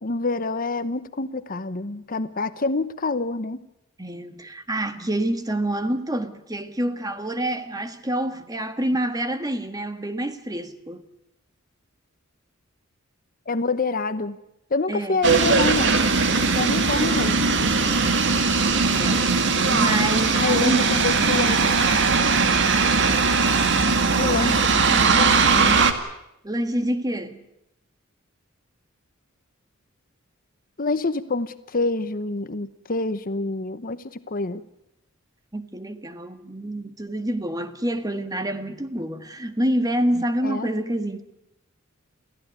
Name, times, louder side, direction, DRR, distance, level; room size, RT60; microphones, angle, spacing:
voice 1, 0.0-3.6 13.5-14.4 14.7-16.0 16.5-17.6 20.3-21.7 24.1-24.6 24.9-25.8 30.8-34.6 40.4-40.7, left 3 dB, 45° left, 1.0 m, -27 dB
voice 2, 4.0-11.0 14.9-15.2 18.9-20.9 24.3-24.6 26.4-27.4 35.5-41.2, right 1 dB, 20° right, 1.5 m, -27 dB
sound 1, 15.2-25.9, right 4 dB, 60° right, 2.0 m, -20 dB
28.5 x 15.0 x 9.6 m
head